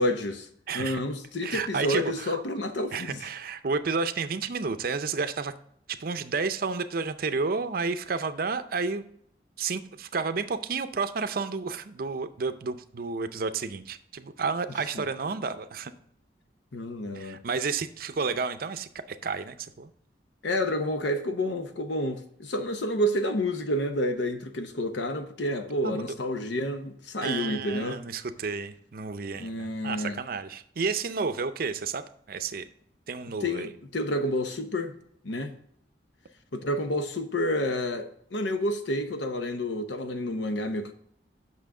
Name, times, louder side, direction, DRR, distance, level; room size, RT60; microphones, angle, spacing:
voice 1, 0.0-0.5 0.7-3.3 14.9-15.0 16.7-17.4 20.4-28.0 29.3-30.2 33.4-34.9 35.2-35.5 36.5-40.9, left 1 dB, 80° left, 0.9 m, -29 dB
voice 2, 0.7-1.0 1.4-2.4 2.9-5.5 5.9-9.0 9.6-15.9 17.1-19.9 25.8-26.1 27.2-32.0 32.3-32.7 33.1-33.7, right 4 dB, 55° right, 0.5 m, -31 dB
8.3 x 6.1 x 3.7 m
head